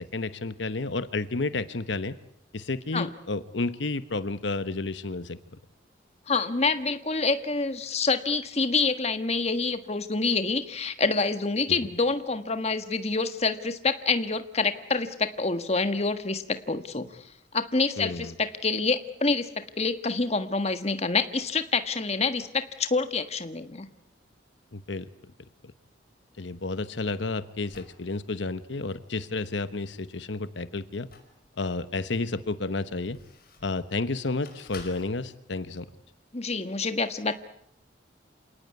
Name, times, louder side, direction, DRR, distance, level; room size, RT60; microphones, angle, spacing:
voice 1, 0.0-2.1 2.5-5.4 18.0-18.3 24.7-25.1 26.4-31.1 31.6-33.2 33.6-35.9, left 3 dB, 75° left, 13 dB, 1.0 m, -31 dB
voice 2, 6.3-17.3 17.5-23.9 36.3-37.3, left 4 dB, 35° left, 10 dB, 1.5 m, -27 dB
sound 1, 26.6-28.0 30.7-31.8 32.4-33.8 34.4-35.1, left 4 dB, 50° left, 5.3 m, -50 dB
27.5 x 18.5 x 9.5 m, 0.72 s
head